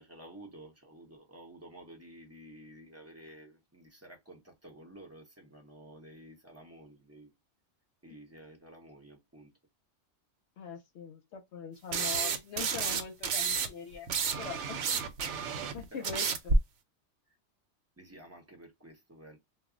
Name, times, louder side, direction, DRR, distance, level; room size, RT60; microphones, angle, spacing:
voice 1, 0.0-7.3 8.0-9.5 15.9-16.2 18.0-19.4, right 1 dB, 15° right, 0.6 m, -52 dB
voice 2, 10.6-14.8 15.7-16.5, left 7 dB, 75° left, 0.8 m, -42 dB
sound 1, 11.9-13.7 13.9-16.6, right 4 dB, 80° right, 0.9 m, -30 dB
2.3 x 2.0 x 3.6 m
omnidirectional pair, 1.2 m